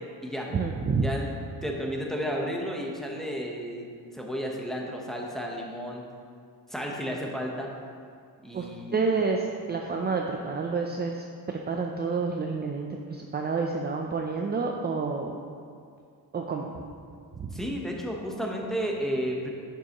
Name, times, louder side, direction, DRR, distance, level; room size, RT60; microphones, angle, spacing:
voice 1, 0.5-1.1 8.5-8.6 8.9-15.4 16.3-16.7 17.4-17.5, right 4 dB, 25° right, 1 dB, 0.5 m, -29 dB
voice 2, 1.0-1.3 1.6-3.9 4.1-6.0 6.7-7.7 8.4-9.1 17.5-19.5, equal, ahead, -1 dB, 1.0 m, -32 dB
11.0 x 6.9 x 3.0 m, 2.3 s
cardioid pair, 135°, 37 cm